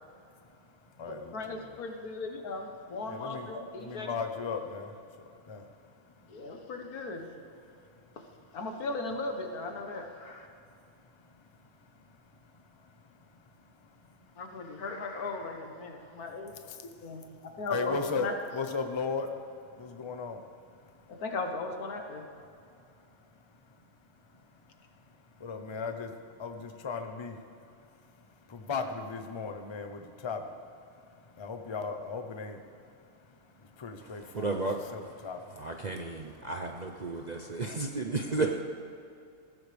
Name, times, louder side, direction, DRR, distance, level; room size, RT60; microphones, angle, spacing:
voice 1, 0.2-1.8 3.1-3.5 3.8-6.5 7.7-8.2 10.5-14.4 16.0-16.2 16.7-21.2 22.5-23.9 24.1-34.7 34.9-35.6, left 4 dB, 25° left, 6 dB, 0.7 m, -40 dB
voice 2, 1.1-4.1 6.3-7.3 8.5-10.5 14.4-16.7 17.0-18.3 21.1-22.3, left 3 dB, 80° left, 4 dB, 1.8 m, -37 dB
voice 3, 34.0-35.0 35.6-38.6, right 3 dB, 40° right, 2 dB, 0.6 m, -33 dB
19.5 x 15.0 x 3.4 m, 2.5 s
omnidirectional pair, 1.6 m